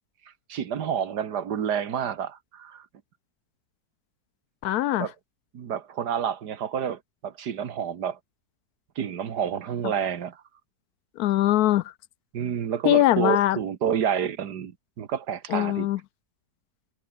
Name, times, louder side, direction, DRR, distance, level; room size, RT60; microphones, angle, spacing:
voice 1, 0.5-2.9 5.0-5.1 5.5-8.2 9.0-10.4 12.3-14.7 15.0-15.9, right 8 dB, 75° right, 1.9 m, -29 dB
voice 2, 4.6-5.1 11.2-11.8 12.8-13.6 15.5-16.0, left 14 dB, 75° left, 1.0 m, -21 dB
omnidirectional pair, 1.8 m